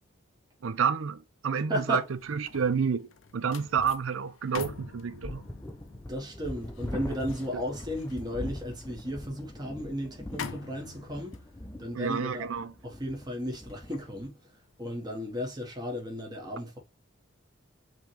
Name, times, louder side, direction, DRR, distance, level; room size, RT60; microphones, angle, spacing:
voice 1, 0.6-2.0 2.3-5.4 11.9-12.7, right 6 dB, 75° right, 0.5 m, -29 dB
voice 2, 1.7-2.0 6.1-11.4 11.8-12.5 12.8-14.3 14.8-16.8, equal, 20° right, 1.3 m, -34 dB
sound 1, 2.0-15.3 15.7-16.0, left 5 dB, 70° left, 0.5 m, -47 dB
sound 2, 5.2-14.3, left 1 dB, 15° left, 0.6 m, -42 dB
5.2 x 3.1 x 3.2 m
head